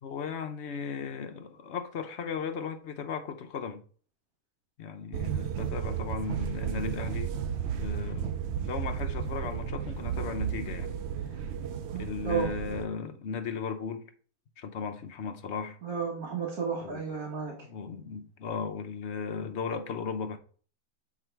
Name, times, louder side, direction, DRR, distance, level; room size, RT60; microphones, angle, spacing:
voice 1, 0.0-3.8 4.8-11.0 11.9-14.0 14.6-15.8 16.8-17.0 17.6-20.4, left 6 dB, 55° left, 0.9 m, -36 dB
sound 1, 5.1-12.9, right 8 dB, 70° right, 0.6 m, -33 dB
voice 2, 15.8-17.5, right 6 dB, 85° right, 1.9 m, -32 dB
7.4 x 3.6 x 4.5 m
omnidirectional pair, 1.6 m